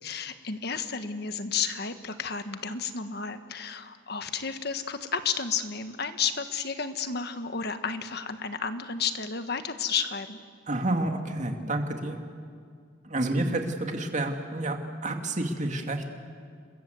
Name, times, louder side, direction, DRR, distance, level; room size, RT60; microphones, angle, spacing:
voice 1, 0.0-10.4, left 6 dB, 55° left, 9 dB, 1.5 m, -32 dB
voice 2, 10.7-12.2 13.0-16.1, right 2 dB, 40° right, 4 dB, 2.3 m, -29 dB
29.0 x 22.0 x 7.9 m, 2.2 s
head